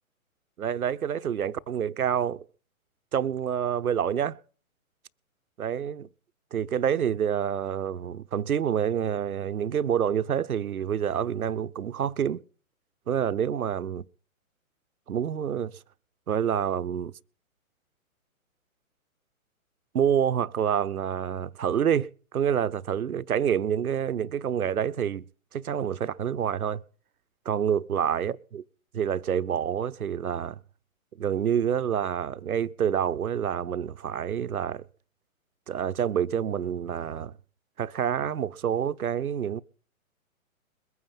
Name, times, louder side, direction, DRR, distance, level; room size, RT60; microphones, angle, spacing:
voice 1, 0.6-2.4 3.1-4.4 5.6-6.1 6.5-12.4 13.1-14.0 15.1-15.7 16.3-17.1 19.9-25.2 25.5-26.8 27.5-28.6 28.9-30.6 31.2-34.8 35.7-37.3 37.8-39.6, right 8 dB, 90° right, 0.8 m, -27 dB
22.0 x 9.4 x 5.5 m
hypercardioid pair, 135°, 42 cm